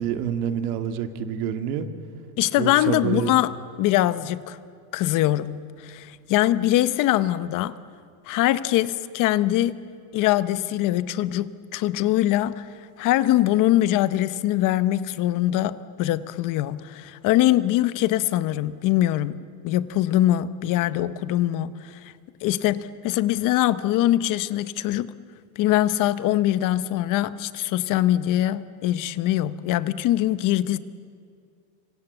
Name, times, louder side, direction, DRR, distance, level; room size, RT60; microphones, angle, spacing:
voice 1, 0.0-1.9 2.6-3.4, right 9 dB, 85° right, 2.1 m, -27 dB
voice 2, 2.4-4.6 4.9-7.8 8.3-9.8 10.1-12.7 13.0-22.1 22.4-25.1 25.6-30.8, left 14 dB, 45° left, 0.9 m, -23 dB
26.5 x 25.5 x 8.1 m
cardioid pair, 150°, 43 cm